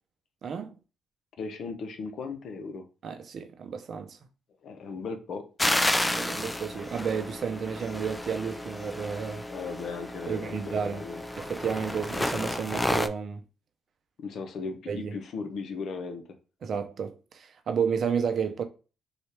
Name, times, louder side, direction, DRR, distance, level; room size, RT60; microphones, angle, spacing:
voice 1, 0.4-0.7 3.0-4.2 6.0-9.5 10.3-11.0 11.4-13.4 14.9-15.1 16.6-18.6, right 6 dB, 60° right, 0.7 m, -32 dB
voice 2, 1.4-2.9 4.6-5.5 9.5-11.2 14.2-16.2, left 4 dB, 65° left, 0.8 m, -37 dB
sound 1, 5.6-13.1, left 1 dB, 10° left, 0.4 m, -31 dB
4.1 x 2.4 x 3.3 m
supercardioid pair, 70°, 0 cm